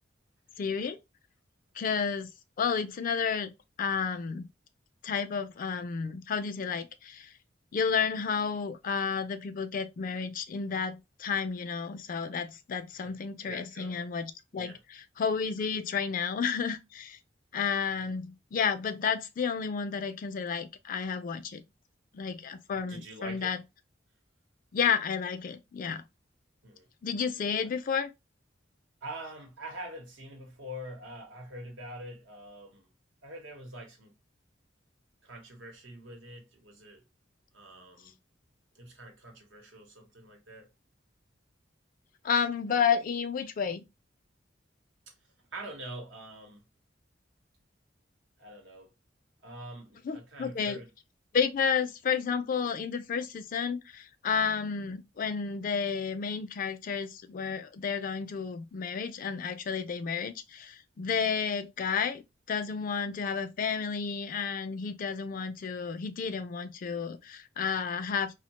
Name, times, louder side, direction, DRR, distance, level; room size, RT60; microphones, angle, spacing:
voice 1, 0.6-1.0 1.8-2.3 2.6-4.5 5.0-7.3 7.7-14.7 15.2-17.2 17.5-21.6 22.1-23.6 24.7-26.0 27.0-28.1 42.2-43.8 50.0-50.8 51.3-68.4, left 6 dB, 50° left, 0.4 m, -31 dB
voice 2, 13.0-14.1 14.5-14.8 22.9-23.6 26.6-26.9 27.6-27.7 29.0-32.9 33.2-34.1 35.2-37.0 37.5-38.2 38.7-40.7 45.1-46.6 48.4-48.9 49.4-50.9, right 1 dB, 85° right, 0.9 m, -45 dB
2.7 x 2.1 x 2.9 m
head